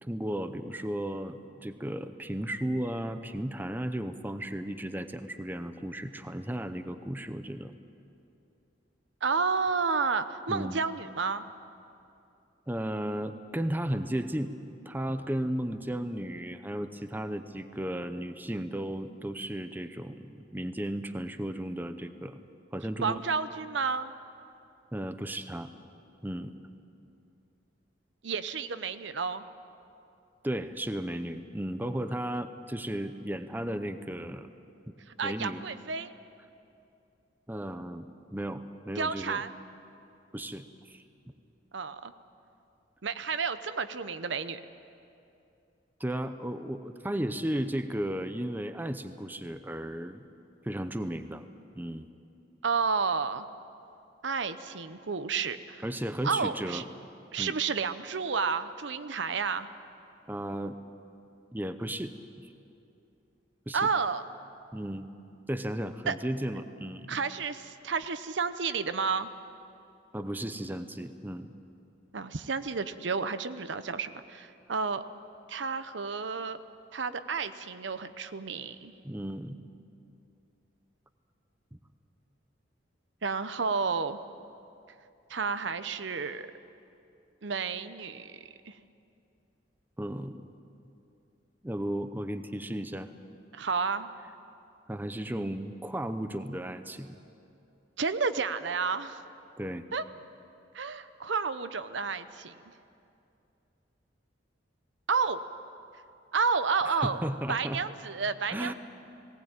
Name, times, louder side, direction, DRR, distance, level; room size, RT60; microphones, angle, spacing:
voice 1, 0.0-7.7 10.5-10.8 12.7-14.5 14.9-22.4 22.7-23.2 24.9-25.7 26.2-26.5 30.4-34.5 35.2-35.6 37.5-39.4 40.3-41.0 46.0-50.3 50.6-51.4 51.8-52.1 55.8-56.8 57.4-57.6 60.3-60.8 61.5-62.1 63.7-63.9 64.7-65.1 65.5-67.1 70.1-71.5 79.0-79.6 81.7-81.8 90.0-90.5 91.6-93.1 94.9-97.2 99.6-99.9 106.8-107.8 108.5-108.7, right 1 dB, 10° right, 9 dB, 0.7 m, -34 dB
voice 2, 9.2-11.4 23.0-24.1 28.2-29.4 35.2-36.1 39.0-39.5 41.7-42.1 43.0-44.6 52.6-53.5 54.2-55.8 56.2-56.8 57.3-59.7 63.7-64.2 66.1-66.2 67.1-69.3 72.1-75.0 75.5-76.6 76.9-78.9 83.2-84.2 85.3-86.5 87.4-88.4 88.7-88.8 93.5-94.1 98.0-99.2 99.9-100.0 100.7-102.5 105.1-105.4 106.3-107.2 107.5-108.7, right 5 dB, 70° right, 11 dB, 0.8 m, -31 dB
19.0 x 18.0 x 8.9 m, 2.6 s
head